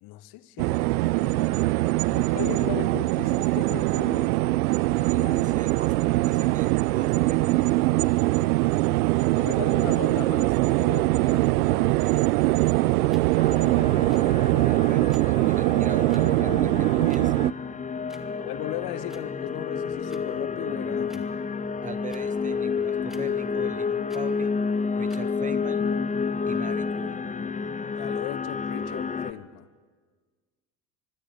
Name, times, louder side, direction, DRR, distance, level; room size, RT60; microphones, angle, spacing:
voice 1, 0.0-4.3 5.1-5.5 9.4-12.3 18.4-21.3 28.0-29.7, left 15 dB, 50° left, 16 dB, 1.1 m, -38 dB
sound 1, 0.6-17.5, right 19 dB, 70° right, 0.5 m, -22 dB
voice 2, 5.0-7.9 14.7-17.4 21.8-24.6 25.0-25.9 26.4-27.2, right 6 dB, 15° right, 16 dB, 0.8 m, -41 dB
sound 2, 13.1-13.2 14.0-14.2 15.1-15.2 16.1-16.2 17.1-17.2 18.1-18.3 19.1-19.2 20.1-20.2 21.1-21.3 22.1-22.2 23.1-23.2 24.1-24.2 25.1-25.2, equal, ahead, 2.0 m, -51 dB
sound 3, 13.4-29.3, left 5 dB, 15° left, 0.8 m, -30 dB
25.0 x 21.0 x 5.4 m, 1.5 s
figure-of-eight pair, 60°, 48 cm